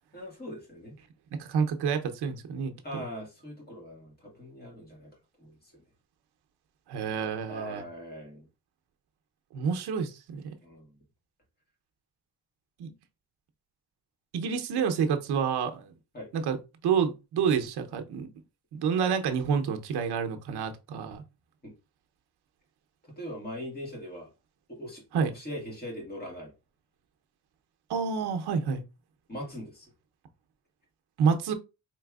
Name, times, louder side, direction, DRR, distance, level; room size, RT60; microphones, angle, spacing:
voice 1, 0.1-0.9 2.8-5.1 5.4-5.5 7.5-8.5 10.6-10.9 16.1-16.3 21.6-21.7 23.2-24.3 24.7-25.0 25.3-26.5 29.3-29.9, equal, 25° left, 1.6 m, -40 dB
voice 2, 1.3-3.0 6.9-7.8 9.5-10.5 12.8-12.9 14.3-15.9 16.3-16.6 16.8-18.3 18.7-21.2 25.1-25.3 27.9-28.8 31.2-31.5, right 6 dB, 85° right, 0.7 m, -28 dB
4.5 x 3.3 x 2.3 m
wide cardioid pair, 150°, 38 cm